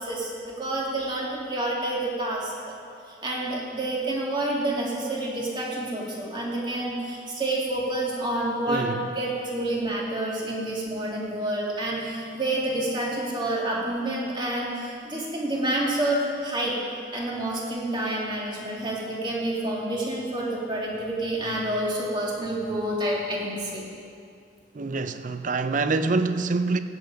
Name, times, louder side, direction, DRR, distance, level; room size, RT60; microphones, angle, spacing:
voice 1, 0.0-2.8 3.1-8.9 9.1-16.8 17.1-23.9, right 1 dB, 25° right, -4 dB, 2.4 m, -28 dB
voice 2, 8.7-9.1 24.7-26.8, right 3 dB, 45° right, 10 dB, 0.5 m, -26 dB
16.5 x 8.3 x 5.2 m, 2.4 s
head